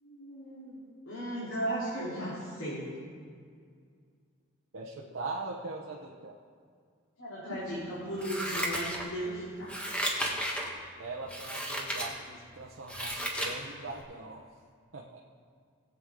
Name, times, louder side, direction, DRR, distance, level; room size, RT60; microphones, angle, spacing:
voice 1, 0.0-3.0 7.2-9.8, right 1 dB, 85° left, -10 dB, 3.5 m, -36 dB
voice 2, 4.7-6.4 11.0-14.4 14.9-15.2, right 3 dB, 80° right, -3 dB, 1.0 m, -41 dB
Scissors, 8.2-9.3 9.7-10.7 11.3-12.1 12.5-13.6 14.0-14.1, equal, 5° left, 1.4 m, -33 dB
20.5 x 8.1 x 3.8 m, 2.1 s
head